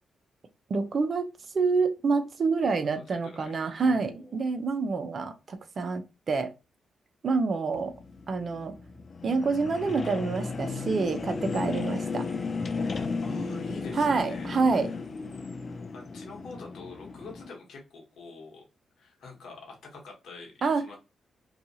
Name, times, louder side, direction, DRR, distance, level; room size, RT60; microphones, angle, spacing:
voice 1, 0.7-1.3 1.5-6.5 7.2-7.9 8.3-8.7 9.2-12.3 14.0-14.9 20.6-20.8, right 4 dB, 55° right, 0.5 m, -27 dB
voice 2, 2.8-3.5 3.8-4.4 13.2-15.0 15.3-18.6 19.0-21.0, left 2 dB, 65° left, 1.0 m, -46 dB
sound 1, 7.7-17.5, left 4 dB, 50° left, 0.4 m, -35 dB
2.7 x 2.3 x 2.7 m
hypercardioid pair, 45°, 0 cm